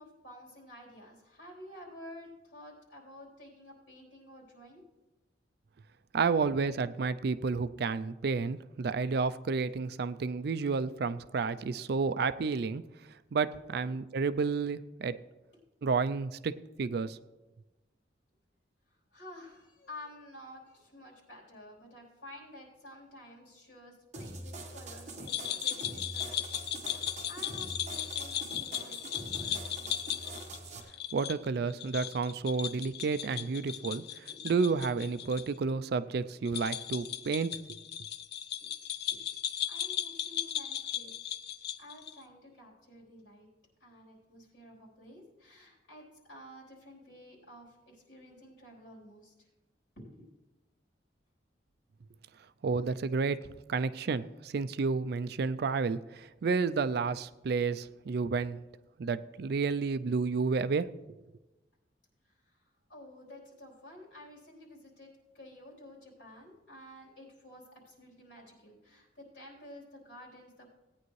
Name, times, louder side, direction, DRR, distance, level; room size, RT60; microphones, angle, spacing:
voice 1, 0.0-4.8 6.3-6.5 13.8-14.0 19.1-30.1 34.3-34.4 39.1-39.2 39.7-41.3 41.8-43.5 43.8-49.5 50.0-50.4 62.2-70.7, left 1 dB, 80° left, -4 dB, 3.7 m, -51 dB
voice 2, 6.1-12.8 13.3-15.2 15.8-17.2 31.1-37.8 52.6-58.6 59.0-60.9, right 4 dB, 60° right, 14 dB, 0.4 m, -31 dB
sound 1, 24.1-30.8, right 2 dB, 40° right, 1.4 m, -44 dB
sound 2, 25.3-35.4 35.7-35.8 36.4-42.2, left 10 dB, 60° left, 0.4 m, -37 dB
17.5 x 9.4 x 3.2 m, 1.1 s
head